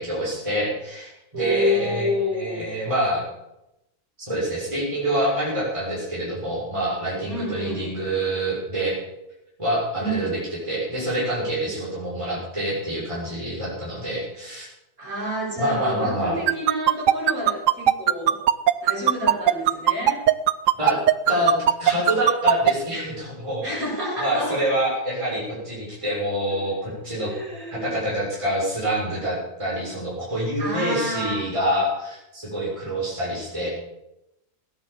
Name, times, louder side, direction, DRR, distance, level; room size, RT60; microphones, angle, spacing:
voice 1, 0.0-3.2 4.3-9.0 9.6-10.4 10.6-14.7 15.6-16.4 20.8-21.0 21.3-23.6 24.2-27.3 27.7-33.7, right 1 dB, 15° right, -7 dB, 6.4 m, -26 dB
voice 2, 1.3-2.7 7.3-7.8 9.9-10.3 15.0-18.4 18.8-20.2 23.6-24.6 27.2-27.9 30.6-31.3, left 1 dB, 45° right, -5 dB, 8.4 m, -28 dB
sound 1, 16.5-22.7, right 12 dB, 85° right, 0.7 m, -16 dB
17.5 x 10.5 x 7.5 m, 0.90 s
omnidirectional pair, 2.2 m